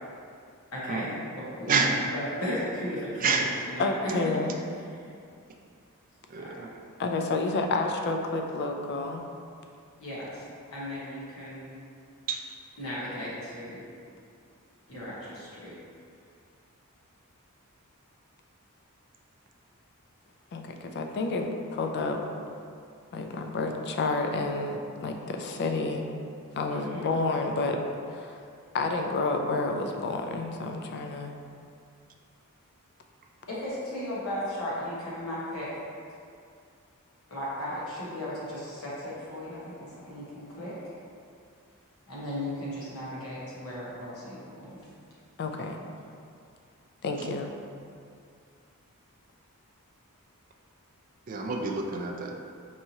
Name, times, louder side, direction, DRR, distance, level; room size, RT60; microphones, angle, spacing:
voice 1, 0.7-4.1 6.4-6.6 10.0-10.5 10.7-11.8 12.8-13.8 14.9-15.7 26.7-27.0 33.5-35.7 37.3-40.7 42.1-44.8, left 1 dB, 70° left, -8 dB, 1.2 m, -36 dB
voice 2, 3.2-3.5 6.3-6.7 12.3-12.4 47.2-47.3 51.3-52.4, right 4 dB, 40° right, 2 dB, 0.3 m, -28 dB
voice 3, 3.8-4.5 7.0-9.2 20.5-22.2 23.1-26.0 26.5-27.8 28.1-28.4 28.7-31.3 45.4-45.8 47.0-47.5, left 3 dB, 50° left, 4 dB, 0.3 m, -30 dB
4.7 x 2.9 x 2.7 m, 2.4 s
head